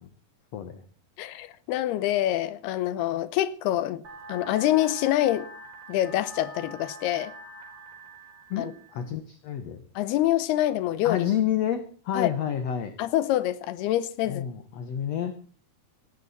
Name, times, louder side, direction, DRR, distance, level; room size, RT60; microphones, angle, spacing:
voice 1, 1.2-4.0 4.3-5.5 5.9-7.3 8.6-8.7 10.0-11.3 12.1-12.3 13.0-14.5, left 13 dB, 90° left, 3.0 m, -26 dB
sound 1, 4.0-9.0, right 1 dB, 75° right, 6.4 m, -44 dB
voice 2, 8.5-9.8 11.0-12.9 14.3-15.3, left 10 dB, 65° left, 1.7 m, -29 dB
18.5 x 16.5 x 4.2 m
omnidirectional pair, 4.5 m